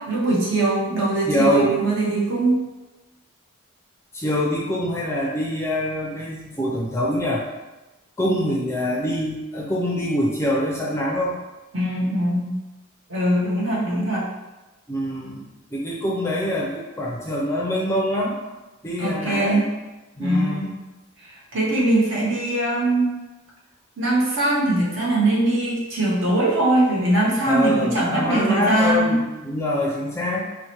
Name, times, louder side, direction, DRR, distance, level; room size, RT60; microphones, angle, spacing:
voice 1, 0.0-2.6 11.7-12.6 13.1-14.3 19.0-19.7 20.2-20.8 21.2-23.2 24.0-29.2, right 1 dB, 60° right, -5 dB, 1.0 m, -21 dB
voice 2, 1.3-1.8 4.1-7.4 8.2-11.4 14.9-15.4 15.7-18.4 18.8-19.7 20.2-20.7 27.5-30.5, equal, 10° left, -4 dB, 0.4 m, -24 dB
4.5 x 2.1 x 2.9 m, 1.1 s
head